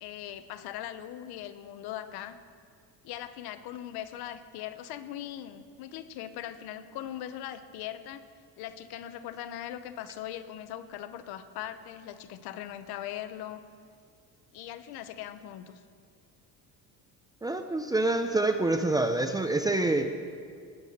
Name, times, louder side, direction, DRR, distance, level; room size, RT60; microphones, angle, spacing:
voice 1, 0.0-2.4 3.0-8.2 8.6-13.6 14.5-15.8, left 11 dB, 85° left, 11 dB, 1.0 m, -40 dB
voice 2, 17.4-20.2, right 2 dB, 10° right, 6 dB, 0.5 m, -26 dB
19.0 x 9.5 x 6.7 m, 2.2 s
cardioid pair, 160°, 37 cm